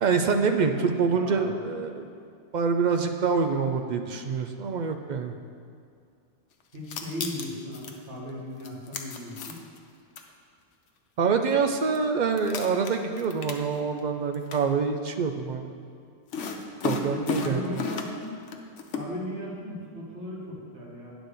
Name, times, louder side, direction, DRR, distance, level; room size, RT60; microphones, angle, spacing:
voice 1, 0.0-2.1 2.5-5.3 11.2-15.7 16.8-17.6, right 5 dB, 60° right, 6 dB, 0.5 m, -26 dB
voice 2, 0.7-1.5 6.7-9.6 17.1-18.4 18.9-21.2, left 1 dB, 75° right, -6 dB, 2.3 m, -37 dB
sound 1, 6.7-7.9 8.6-9.8 10.2-10.3 11.5-11.6 11.9-12.0 12.3-14.0 14.3-14.6 16.3-18.2 18.5-19.0, left 5 dB, 85° left, 1.1 m, -33 dB
9.7 x 4.1 x 6.6 m, 2.3 s
omnidirectional pair, 1.2 m